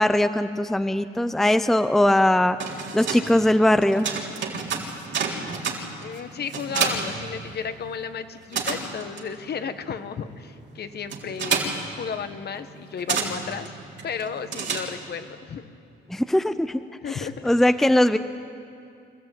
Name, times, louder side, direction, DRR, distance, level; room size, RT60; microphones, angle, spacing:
voice 1, 0.0-2.6 2.9-4.1 16.1-16.8 17.1-18.2, left 1 dB, ahead, 11 dB, 0.6 m, -20 dB
sound 1, 2.4-8.0 8.2-15.3, right 5 dB, 65° right, 3.7 m, -30 dB
voice 2, 6.0-13.7 14.0-15.6 17.0-17.4, left 6 dB, 55° left, 10 dB, 1.3 m, -33 dB
25.5 x 14.5 x 9.1 m, 2.5 s
cardioid pair, 90°, 20 cm